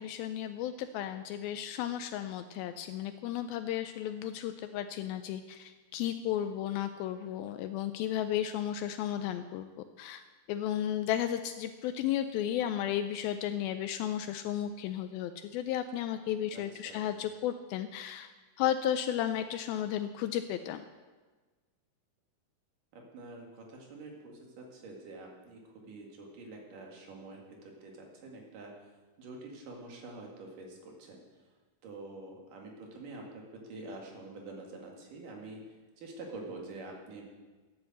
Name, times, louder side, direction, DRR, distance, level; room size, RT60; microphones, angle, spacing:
voice 1, 0.0-9.7 10.0-10.2 10.5-18.3 18.6-20.8, left 11 dB, 80° left, 9 dB, 2.3 m, -34 dB
voice 2, 16.5-17.1 22.9-28.7 29.2-31.2 31.8-35.6 36.0-37.3, right 2 dB, 60° right, 0 dB, 3.5 m, -46 dB
12.0 x 9.6 x 7.8 m, 1.3 s
omnidirectional pair, 4.4 m